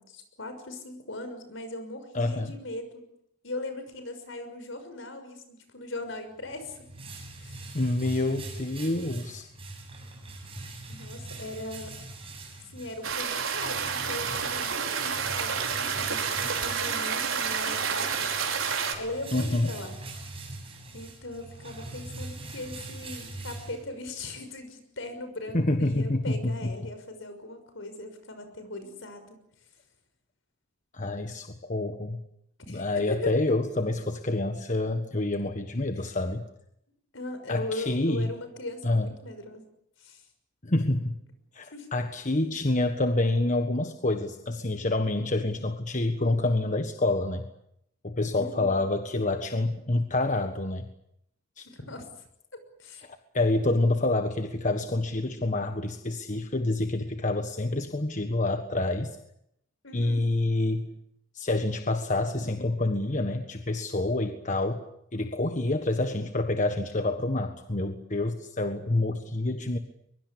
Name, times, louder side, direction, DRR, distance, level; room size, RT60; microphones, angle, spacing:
voice 1, 0.0-3.0 3.4-6.8 7.4-7.7 10.9-12.0 12.7-18.4 19.0-20.0 20.9-29.4 32.7-33.3 37.1-39.6 40.0-40.2 41.7-41.9 42.3-42.5 48.3-48.9 51.6-52.1 52.5-53.1 59.8-60.3, left 2 dB, 65° left, 8 dB, 6.2 m, -39 dB
voice 2, 2.1-2.5 7.7-9.5 19.3-19.7 25.5-26.9 30.9-32.2 32.7-36.4 37.5-38.3 38.8-39.1 40.6-41.1 41.5-47.5 48.0-50.9 51.6-51.7 53.0-59.2 59.9-61.0 61.3-64.8 65.1-69.8, left 2 dB, 40° left, 7 dB, 1.5 m, -27 dB
sound 1, 6.4-24.2, right 2 dB, 30° right, 7.5 m, -42 dB
sound 2, 13.0-18.9, right 6 dB, 80° right, 5.0 m, -29 dB
23.0 x 23.0 x 8.6 m, 0.76 s
head